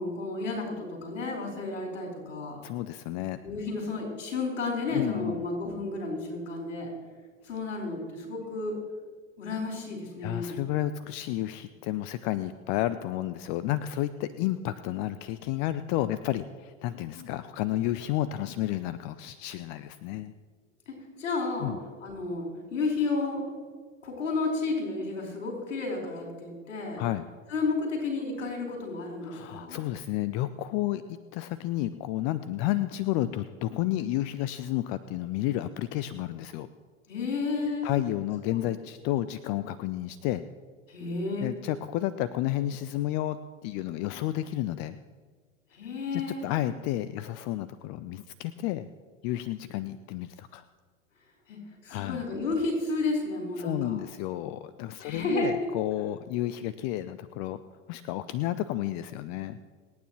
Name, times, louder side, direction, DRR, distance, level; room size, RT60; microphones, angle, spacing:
voice 1, 0.0-2.6 3.4-6.9 7.4-8.7 9.4-10.6 20.9-21.7 22.0-23.5 24.0-27.0 27.5-29.8 37.1-37.9 38.5-38.6 40.9-41.5 45.7-46.4 51.5-54.0 55.0-55.5, left 3 dB, 75° left, 0 dB, 4.6 m, -32 dB
voice 2, 2.6-3.4 4.9-5.4 10.2-20.3 21.6-21.8 27.0-27.2 29.2-36.7 37.8-40.4 41.4-45.0 46.1-48.9 49.2-50.6 51.9-52.2 53.6-57.6 57.9-59.6, left 14 dB, 45° left, 14 dB, 0.6 m, -31 dB
27.5 x 9.4 x 3.1 m, 1.5 s
figure-of-eight pair, 80°, 37 cm